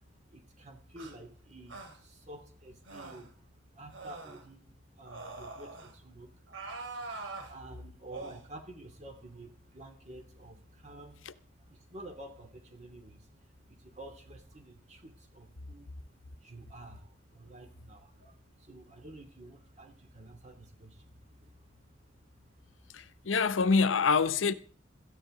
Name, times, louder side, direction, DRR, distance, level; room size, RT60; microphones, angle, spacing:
voice 1, 0.3-3.4 3.7-6.4 7.4-13.3 13.6-15.9 16.4-21.5, right 1 dB, 35° right, 2.7 m, -50 dB
sound 1, 1.0-1.1 1.7-2.0 2.9-3.3 3.9-4.5 5.1-5.9 6.5-7.5 8.1-8.4, right 3 dB, 85° right, 3.0 m, -43 dB
voice 2, 22.9-24.5, left 5 dB, 90° left, 0.8 m, -26 dB
17.0 x 13.5 x 3.8 m
head